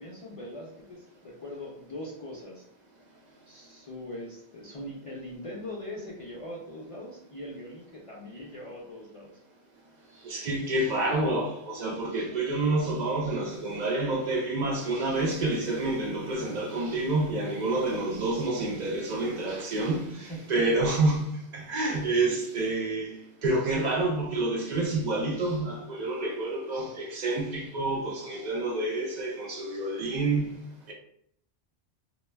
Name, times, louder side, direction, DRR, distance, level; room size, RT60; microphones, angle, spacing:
voice 1, 0.0-2.6 3.5-9.4 20.3-20.8, left 1 dB, 60° left, 0.3 m, -41 dB
voice 2, 10.2-23.1 23.4-30.5, right 2 dB, 55° right, 0.5 m, -28 dB
2.2 x 2.0 x 3.2 m
omnidirectional pair, 1.1 m